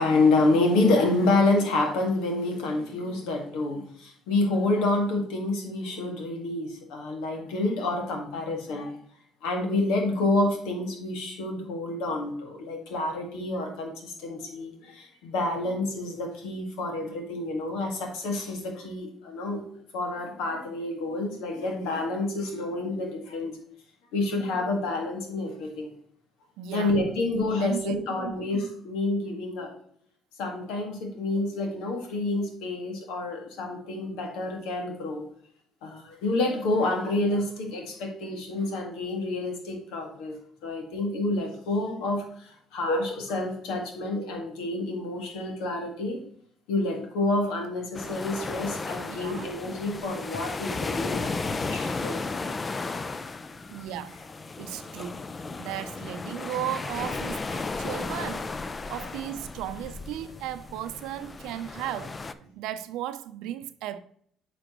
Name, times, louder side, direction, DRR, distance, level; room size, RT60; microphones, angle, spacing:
voice 1, 0.0-8.9 9.4-19.7 19.9-23.5 24.1-25.9 26.7-29.7 30.4-35.2 35.8-40.4 40.6-46.2 46.7-52.2, left 2 dB, 85° left, 1.8 m, -28 dB
voice 2, 26.6-27.0 27.6-28.3 49.1-49.6 53.7-54.2 54.6-55.3 55.6-58.6 58.9-64.0, right 11 dB, 80° right, 0.5 m, -36 dB
sound 1, 47.9-62.3, left 3 dB, 30° left, 0.5 m, -34 dB
9.0 x 5.0 x 3.0 m
supercardioid pair, 80°, 0 cm